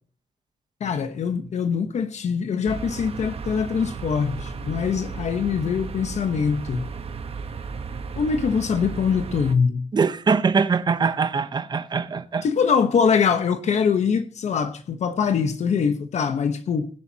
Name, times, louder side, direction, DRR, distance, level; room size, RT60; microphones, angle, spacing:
voice 1, 0.8-6.9 8.2-9.9 12.4-16.9, left 6 dB, 75° left, 1.0 m, -23 dB
sound 1, 2.7-9.5, right 5 dB, 55° right, 1.2 m, -34 dB
voice 2, 9.9-12.5, right 5 dB, 35° right, 0.8 m, -22 dB
18.5 x 10.5 x 2.8 m
wide cardioid pair, 155°, 12 cm